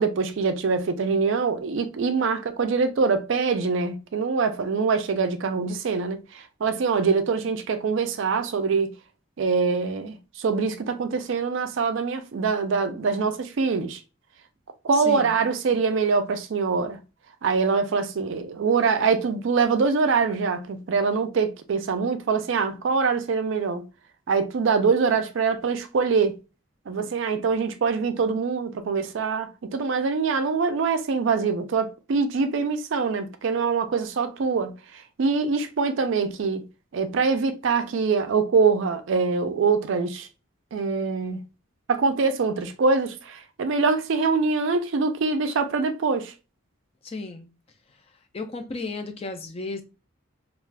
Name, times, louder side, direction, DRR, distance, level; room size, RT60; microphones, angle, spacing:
voice 1, 0.0-8.9 9.4-14.0 14.8-17.0 17.4-23.9 24.3-26.4 26.9-36.7 36.9-40.3 40.7-41.4 41.9-46.3, right 4 dB, 60° right, 0.4 m, -24 dB
voice 2, 14.9-15.4 47.0-47.5 48.3-49.8, left 3 dB, 30° left, 0.4 m, -34 dB
2.4 x 2.3 x 3.3 m
head